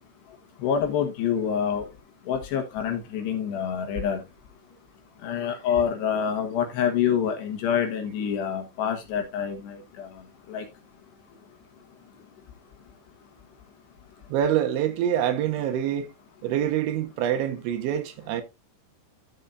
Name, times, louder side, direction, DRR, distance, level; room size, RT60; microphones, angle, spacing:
voice 1, 0.6-1.8 2.3-4.2 5.2-10.1 10.5-10.6, left 8 dB, 70° left, 3.3 m, -26 dB
voice 2, 14.3-16.1 16.4-18.4, right 10 dB, 80° right, 3.6 m, -25 dB
13.0 x 7.5 x 2.6 m
omnidirectional pair, 5.3 m